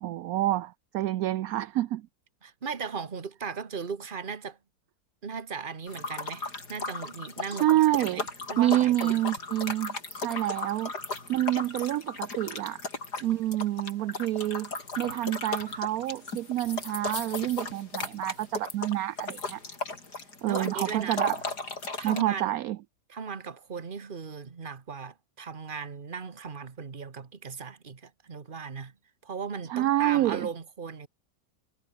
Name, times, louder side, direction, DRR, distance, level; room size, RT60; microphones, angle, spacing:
voice 1, 0.0-2.0 7.5-8.3 8.6-10.9 11.3-12.8 13.2-14.7 15.0-19.6 20.4-21.4 22.0-22.8 29.7-30.5, right 14 dB, 70° right, 1.0 m, -28 dB
voice 2, 2.4-4.6 5.2-7.7 8.0-8.2 8.5-9.2 20.5-21.2 22.0-22.6 23.1-28.9 29.2-31.1, right 5 dB, 30° right, 1.5 m, -37 dB
sound 1, 5.9-22.2, left 3 dB, 70° left, 5.0 m, -36 dB
omnidirectional pair, 1.8 m